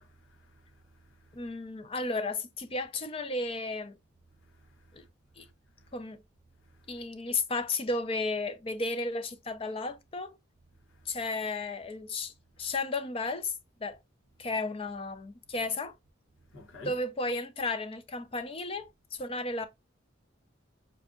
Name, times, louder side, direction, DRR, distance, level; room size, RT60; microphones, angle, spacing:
voice 1, 0.0-1.5 4.4-5.1 5.4-5.5 5.8-5.9 6.6-7.0 10.9-11.2 12.6-12.7 16.5-17.0, left 1 dB, 80° left, 1.0 m, -53 dB
voice 2, 1.3-4.0 4.9-5.0 5.4-5.5 5.9-6.2 6.9-10.3 11.1-12.3 12.6-13.5 13.8-14.0 14.4-15.9 16.9-19.7, left 3 dB, 30° left, 0.4 m, -33 dB
4.6 x 2.5 x 3.6 m
head